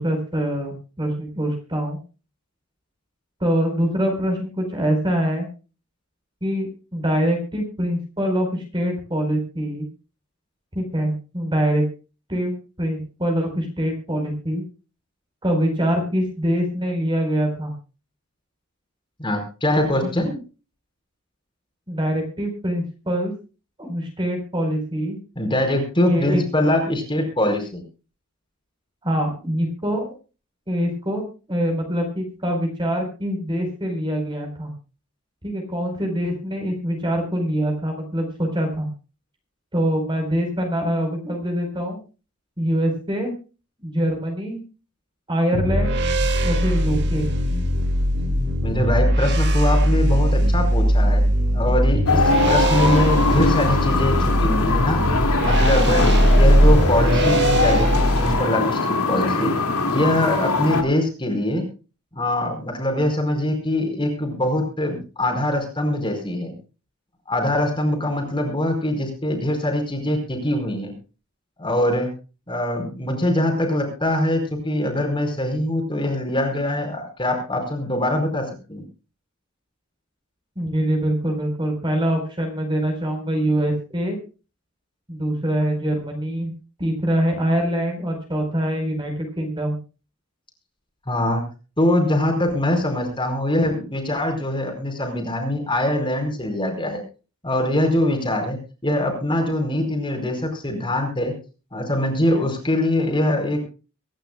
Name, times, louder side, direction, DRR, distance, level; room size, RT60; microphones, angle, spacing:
voice 1, 0.0-2.0 3.4-5.5 6.4-9.9 10.7-11.8 12.3-14.6 15.4-17.7 20.2-20.3 21.9-23.3 23.8-25.2 26.0-26.4 29.0-30.2 30.7-31.2 31.5-34.7 35.4-38.9 39.7-42.0 42.6-43.3 43.8-44.6 45.3-46.0 46.4-47.3 80.6-84.2 85.1-86.5 86.8-89.8, equal, 20° right, 3 dB, 4.4 m, -24 dB
voice 2, 19.2-20.4 25.4-27.8 48.6-51.2 51.5-55.0 55.4-56.0 56.4-59.5 59.9-61.6 62.1-66.5 67.3-70.9 71.6-72.1 72.5-78.8 91.1-91.4 91.8-97.0 97.4-98.6 98.8-101.3 101.7-103.7, left 1 dB, 25° left, 3 dB, 4.8 m, -23 dB
sound 1, 45.5-58.3, equal, 50° right, 2.3 m, -19 dB
sound 2, 52.1-60.8, left 3 dB, 90° left, 2.4 m, -22 dB
24.5 x 11.5 x 2.3 m, 0.33 s
head